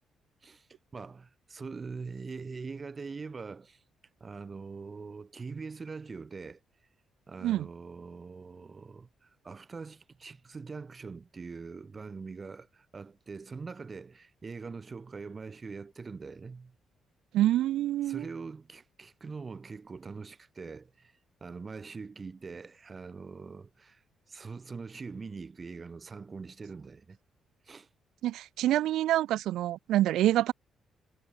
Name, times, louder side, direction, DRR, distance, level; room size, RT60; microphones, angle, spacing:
voice 1, 0.4-3.8 4.2-6.6 7.3-16.7 18.0-24.0 24.3-27.2 27.6-27.9, right 4 dB, 35° right, 7.5 m, -43 dB
voice 2, 17.3-18.2 28.2-30.5, right 13 dB, 85° right, 1.8 m, -26 dB
cardioid pair, 90°, 0 cm